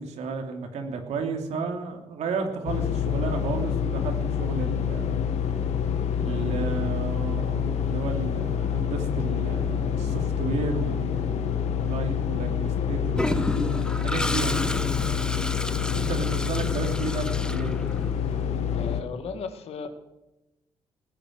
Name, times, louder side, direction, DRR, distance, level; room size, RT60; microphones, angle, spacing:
voice 1, 0.0-5.2 6.2-14.6 15.9-17.8, right 4 dB, 85° right, 3 dB, 2.9 m, -33 dB
sound 1, 2.6-19.0, left 8 dB, 85° left, 1.3 m, -27 dB
Toilet flush, 13.2-18.2, left 1 dB, 5° left, 0.7 m, -31 dB
voice 2, 18.7-19.9, left 5 dB, 65° left, 8 dB, 2.0 m, -36 dB
19.5 x 9.3 x 6.5 m, 0.97 s
cardioid pair, 150°, 11 cm